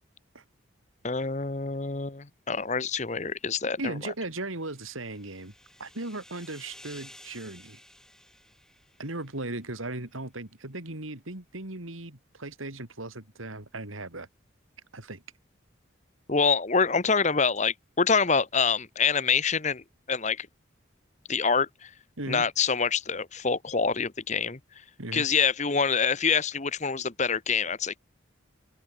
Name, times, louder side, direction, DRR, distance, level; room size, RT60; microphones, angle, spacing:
voice 1, 1.0-3.9 16.3-19.8 20.1-20.5 21.3-21.9 22.3-24.6 25.1-28.0, left 5 dB, 35° left, 1.0 m, -26 dB
voice 2, 3.8-5.5 5.8-7.8 9.0-14.3 14.9-15.2 22.2-22.5 25.0-25.3, right 2 dB, 90° right, 3.7 m, -37 dB
sound 1, 4.3-9.7, left 1 dB, 5° left, 2.7 m, -53 dB
open air
head